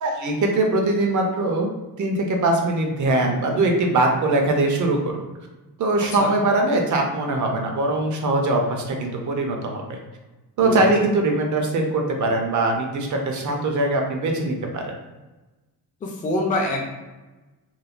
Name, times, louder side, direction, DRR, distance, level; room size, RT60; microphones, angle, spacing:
voice 1, 0.0-1.7 2.0-5.2 5.8-10.0 10.6-14.9, right 2 dB, 50° right, 2 dB, 0.5 m, -22 dB
voice 2, 10.6-11.0 16.0-16.8, left 2 dB, 20° left, 0 dB, 0.4 m, -25 dB
3.0 x 2.1 x 2.5 m, 1.1 s
wide cardioid pair, 140°, 40 cm